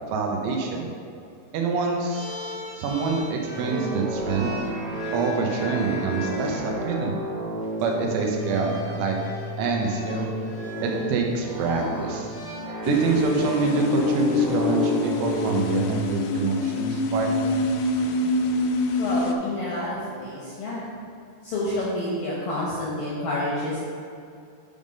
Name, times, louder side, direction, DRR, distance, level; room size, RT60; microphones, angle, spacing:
voice 1, 0.1-0.9 1.5-2.3 2.8-4.5 5.1-7.2 7.8-9.2 9.6-10.3 10.8-12.3 12.9-17.6, right 4 dB, 85° right, 1 dB, 3.3 m, -26 dB
sound 1, 2.1-6.6 7.6-7.8 8.3-13.2, right 1 dB, 55° left, 1.3 m, -37 dB
sound 2, 3.5-20.1, right 1 dB, 65° right, 3.8 m, -33 dB
sound 3, 12.8-19.4, left 3 dB, 90° left, 3.2 m, -25 dB
voice 2, 19.0-20.8 21.4-23.8, left 1 dB, 75° left, -6 dB, 2.1 m, -29 dB
10.5 x 3.6 x 5.2 m, 2.5 s
omnidirectional pair, 5.6 m